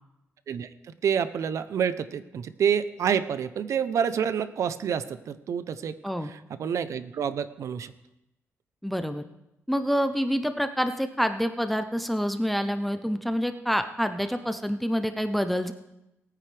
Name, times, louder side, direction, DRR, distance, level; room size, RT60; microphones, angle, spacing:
voice 1, 1.0-5.9 6.2-7.9, right 7 dB, 70° right, 13 dB, 0.6 m, -28 dB
voice 2, 8.8-9.3 9.7-15.7, equal, ahead, 9 dB, 0.6 m, -27 dB
19.0 x 9.4 x 3.4 m, 0.91 s
cardioid pair, 100°, 5 cm